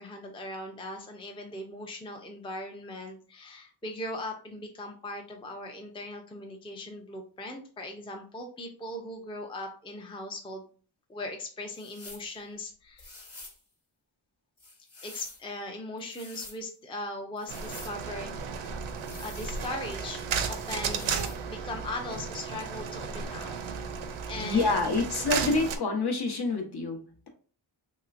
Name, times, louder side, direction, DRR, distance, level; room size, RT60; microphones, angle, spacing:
voice 1, 0.0-10.7 11.1-13.1 15.0-18.9 19.2-21.1 21.5-23.5 24.3-24.9, left 2 dB, 10° left, 0.5 m, -39 dB
sound 1, 11.7-12.3 13.0-13.6 14.6-15.4 16.0-16.6 17.4-18.0 19.0-20.0 20.8-21.4, left 2 dB, 30° left, 1.1 m, -47 dB
sound 2, 17.5-25.8, right 6 dB, 75° right, 0.6 m, -34 dB
voice 2, 24.3-27.3, left 3 dB, 50° left, 0.9 m, -27 dB
3.2 x 2.9 x 2.5 m
wide cardioid pair, 70°, 49 cm